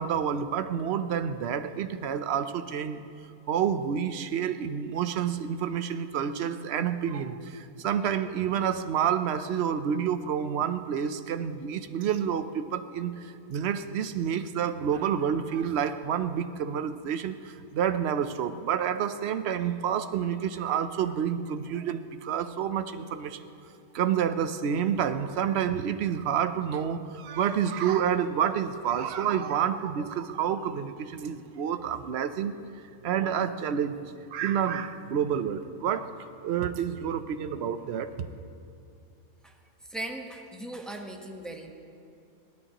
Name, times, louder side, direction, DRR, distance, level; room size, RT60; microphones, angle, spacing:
voice 1, 0.0-3.0 3.5-23.5 23.9-32.5 33.0-34.0 34.3-36.1 36.4-38.3, right 8 dB, 60° right, 9 dB, 0.7 m, -29 dB
voice 2, 39.9-41.7, right 1 dB, ahead, 1 dB, 0.9 m, -38 dB
29.5 x 11.5 x 3.0 m, 2.7 s
omnidirectional pair, 1.6 m